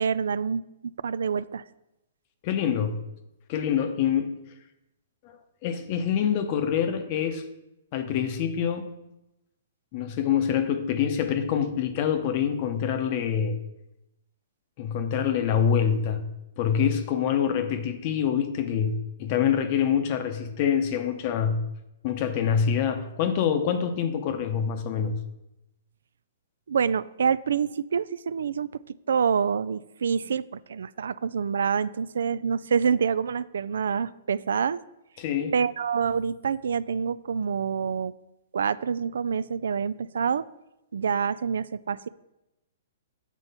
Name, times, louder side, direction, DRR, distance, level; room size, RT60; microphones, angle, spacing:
voice 1, 0.0-1.6 26.7-34.8 35.5-38.1 38.5-40.5 40.9-42.1, right 6 dB, 85° right, 0.3 m, -27 dB
voice 2, 2.4-3.0 3.5-4.3 5.6-7.4 7.9-8.9 9.9-13.6 14.8-21.7 22.0-25.2 35.2-35.5, left 8 dB, 30° left, 0.7 m, -26 dB
8.3 x 4.5 x 5.5 m
hypercardioid pair, 170°, 0 cm